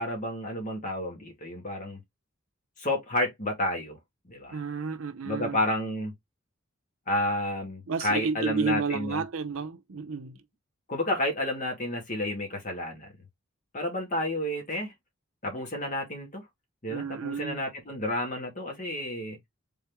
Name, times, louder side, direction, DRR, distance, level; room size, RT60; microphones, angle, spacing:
voice 1, 0.0-2.0 2.8-4.0 4.3-4.6 5.2-6.1 7.1-9.2 10.9-13.1 13.7-14.9 15.4-16.4 16.8-19.4, left 1 dB, 40° left, 1.7 m, -31 dB
voice 2, 4.5-5.6 7.9-10.4 16.9-17.6, right 5 dB, 75° right, 0.6 m, -31 dB
3.8 x 3.0 x 3.5 m
head